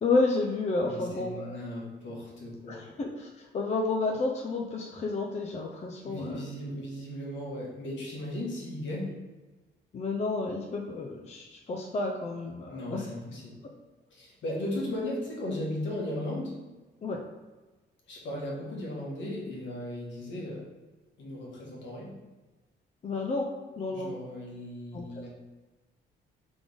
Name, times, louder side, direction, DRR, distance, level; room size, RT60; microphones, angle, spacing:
voice 1, 0.0-1.6 2.7-6.4 9.9-13.0 17.0-17.2 23.0-23.5 23.8-24.1 24.9-25.1, left 3 dB, 35° left, 0 dB, 0.5 m, -30 dB
voice 2, 0.8-2.9 6.0-9.1 12.7-13.6 14.1-16.5 18.1-20.7 21.2-22.2 23.9-25.3, left 1 dB, 70° left, -3 dB, 1.4 m, -36 dB
3.8 x 3.4 x 3.5 m, 1.2 s
cardioid pair, 90°, 20 cm